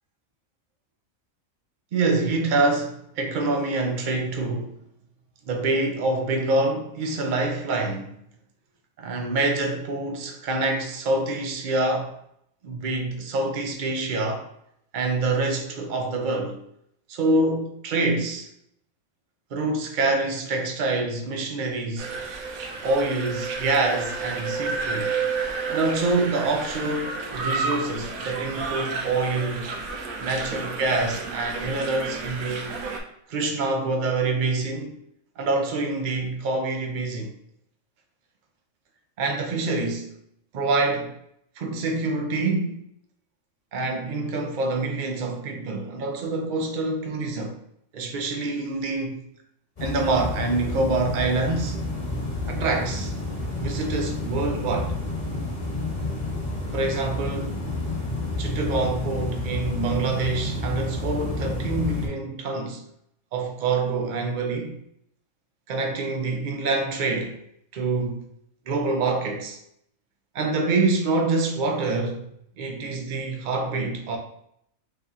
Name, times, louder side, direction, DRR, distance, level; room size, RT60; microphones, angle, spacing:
voice 1, 1.9-4.8 5.4-8.1 9.0-12.2 12.6-14.5 14.9-16.6 17.1-18.5 19.5-22.1 22.8-25.1 25.7-29.7 30.2-32.7 33.3-34.9 35.4-37.3 39.2-40.2 40.5-41.1 41.6-42.8 43.7-47.6 47.9-49.2 49.8-51.7 52.4-53.1 53.6-54.9 56.7-57.6 58.4-62.8 63.3-64.8 65.7-67.4 67.7-68.2 68.7-69.6 70.3-72.2 72.6-74.2, right 3 dB, 55° right, 0.6 m, -26 dB
sound 1, 22.0-33.0, right 4 dB, 85° right, 1.1 m, -31 dB
sound 2, 49.8-62.1, left 2 dB, 30° left, 1.2 m, -30 dB
3.4 x 2.8 x 3.5 m
omnidirectional pair, 1.4 m